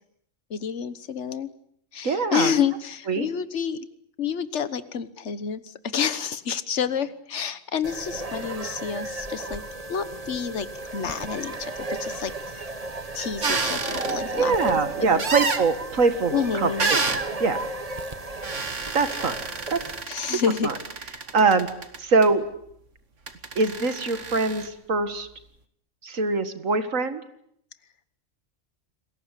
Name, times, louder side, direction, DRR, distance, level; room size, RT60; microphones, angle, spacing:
voice 1, 0.5-1.5 1.9-3.8 4.2-9.6 9.9-10.7 10.9-12.6 13.1-14.8 15.1-15.2 16.3-16.9 20.1-20.7, left 7 dB, 65° left, 13 dB, 1.6 m, -29 dB
voice 2, 2.0-2.5 3.1-3.3 14.2-17.7 18.9-19.3 19.7-19.8 20.2-20.7 21.3-21.7 22.0-22.4 23.6-25.3 26.0-27.2, right 4 dB, 85° right, 10 dB, 2.2 m, -23 dB
sound 1, 7.8-20.0, right 2 dB, 30° right, 1.6 m, -34 dB
sound 2, 13.4-14.1 15.2-15.6 16.8-17.2 18.4-22.3 23.3-24.7, right 4 dB, 65° right, 2.2 m, -29 dB
29.5 x 21.0 x 8.3 m, 0.71 s
omnidirectional pair, 1.3 m